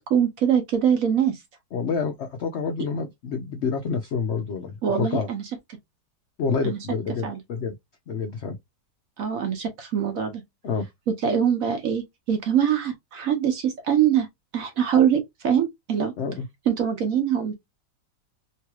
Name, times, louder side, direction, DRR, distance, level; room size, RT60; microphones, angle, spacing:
voice 1, 0.0-1.4 4.8-5.5 6.6-6.8 7.2-7.4 9.2-10.4 11.1-14.3 14.5-16.1 16.7-17.5, right 8 dB, 60° right, 1.0 m, -23 dB
voice 2, 1.7-5.3 6.4-7.8 8.1-8.6 10.6-10.9 16.2-16.5, left 5 dB, 85° left, 0.6 m, -28 dB
3.2 x 3.0 x 2.3 m
omnidirectional pair, 1.9 m